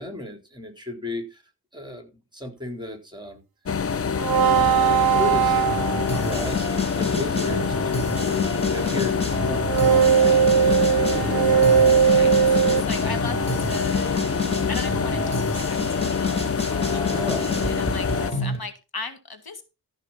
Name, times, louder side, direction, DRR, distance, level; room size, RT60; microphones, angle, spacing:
voice 1, 0.0-1.4 1.7-3.4 3.9-5.7 6.2-6.6 7.0-10.3 10.6-12.0 17.1-18.2, left 1 dB, 10° right, 4.0 m, -35 dB
sound 1, 3.6-18.3, left 6 dB, 35° left, 0.5 m, -26 dB
sound 2, 4.2-6.4 9.6-12.8, right 8 dB, 60° right, 0.7 m, -19 dB
sound 3, 5.6-18.6, left 1 dB, 15° left, 5.3 m, -30 dB
voice 2, 11.9-14.2 14.7-15.8 16.1-16.5 16.8-17.1 17.7-19.6, left 4 dB, 65° left, 1.8 m, -37 dB
14.0 x 5.8 x 5.7 m
wide cardioid pair, 60°, 40 cm